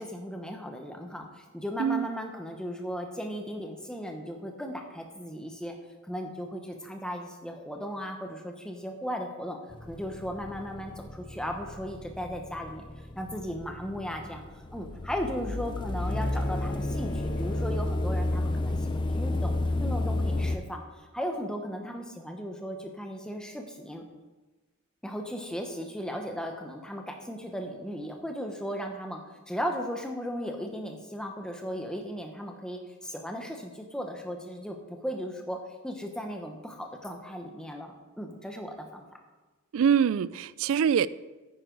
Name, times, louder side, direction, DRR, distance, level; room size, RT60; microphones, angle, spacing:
voice 1, 0.0-5.7 6.0-9.6 9.9-12.9 13.2-20.8 21.1-24.1 25.0-35.6 35.8-39.0, equal, 5° left, 0.9 m, -36 dB
sound 1, 9.7-20.6, left 2 dB, 20° left, 0.4 m, -32 dB
sound 2, 16.0-18.5, right 1 dB, 50° left, 1.0 m, -43 dB
voice 2, 39.7-41.1, right 7 dB, 70° right, 0.3 m, -24 dB
9.6 x 9.6 x 3.9 m
head